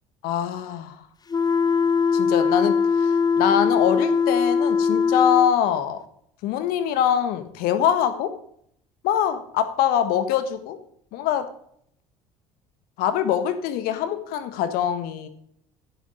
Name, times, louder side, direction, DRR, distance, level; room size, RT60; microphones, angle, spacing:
voice 1, 0.2-1.0 2.1-6.0 6.4-8.3 9.0-10.8 11.1-11.5 13.0-15.3, left 9 dB, 70° left, 10 dB, 1.5 m, -23 dB
sound 1, 1.3-5.5, left 5 dB, 25° left, 0.6 m, -21 dB
10.0 x 8.1 x 5.0 m, 0.68 s
hypercardioid pair, 65°, 16 cm